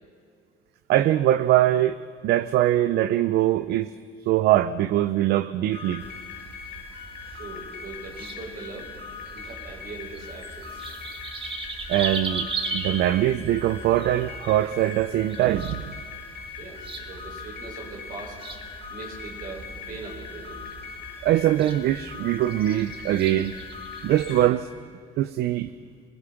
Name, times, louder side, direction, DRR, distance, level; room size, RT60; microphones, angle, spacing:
voice 1, 0.9-3.9 4.2-6.0 11.9-16.0 21.2-23.5 24.0-24.7 25.2-25.7, right 13 dB, 75° right, 15 dB, 0.6 m, -22 dB
sound 1, 5.7-24.5, left 6 dB, 80° left, 5.2 m, -41 dB
sound 2, 6.0-24.5, right 3 dB, 30° right, 2.3 m, -39 dB
voice 2, 7.3-8.9 9.3-10.8 16.6-18.4 18.9-20.6, right 3 dB, 55° right, -1 dB, 7.0 m, -40 dB
27.0 x 20.0 x 5.9 m, 2.3 s
cardioid pair, 110°, 17 cm